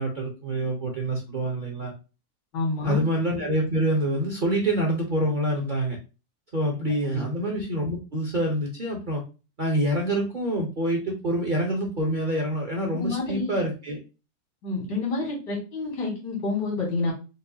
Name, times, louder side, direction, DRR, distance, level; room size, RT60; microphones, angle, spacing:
voice 1, 0.0-1.9 2.8-6.0 6.5-9.2 9.6-14.0, right 1 dB, 55° right, 0 dB, 0.5 m, -26 dB
voice 2, 2.5-3.0 7.1-7.2 12.9-13.5 14.6-17.1, left 3 dB, 85° left, -3 dB, 2.6 m, -28 dB
5.2 x 2.2 x 2.7 m, 0.31 s
omnidirectional pair, 1.9 m